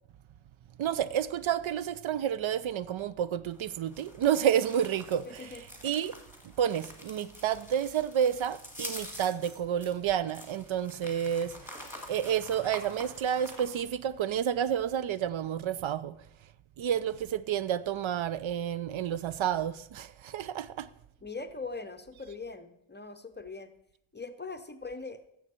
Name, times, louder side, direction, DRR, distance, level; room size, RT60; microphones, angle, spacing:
voice 1, 0.8-6.2 6.6-11.8 12.1-16.2 16.8-20.9, right 9 dB, 70° right, 0.5 m, -30 dB
sound 1, 3.5-13.8, left 1 dB, 5° right, 1.7 m, -47 dB
voice 2, 5.2-5.6 21.2-23.7 24.1-25.2, left 3 dB, 20° left, 0.5 m, -41 dB
15.0 x 6.9 x 4.3 m
wide cardioid pair, 170°, 49 cm